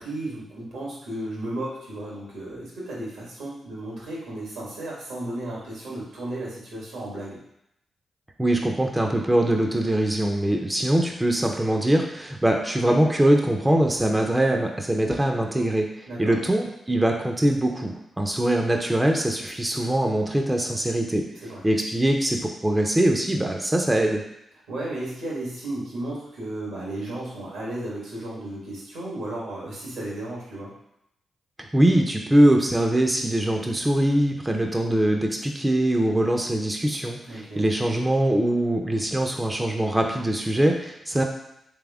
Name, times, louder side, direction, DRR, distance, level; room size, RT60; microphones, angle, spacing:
voice 1, 0.0-7.4 16.0-16.3 21.3-21.7 24.7-30.7 37.3-37.7, right 1 dB, 85° right, -5 dB, 1.6 m, -34 dB
voice 2, 8.4-21.2 21.6-24.2 31.6-41.2, right 1 dB, 20° right, 2 dB, 0.6 m, -22 dB
3.5 x 3.3 x 3.6 m, 0.81 s
supercardioid pair, 40°, 0 cm